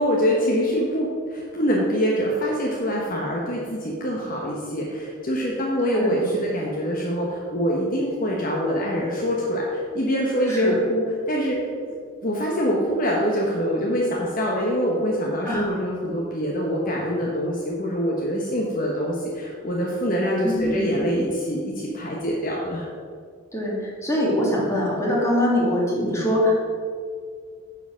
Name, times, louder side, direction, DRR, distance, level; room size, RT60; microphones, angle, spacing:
voice 1, 0.0-11.6 11.8-11.9 12.2-22.9, equal, 40° left, -3 dB, 1.2 m, -24 dB
voice 2, 5.9-6.3 10.5-10.8 15.4-15.7 20.4-21.1 23.5-26.5, left 1 dB, 15° left, -5 dB, 2.3 m, -23 dB
9.8 x 5.0 x 6.2 m, 2.1 s
head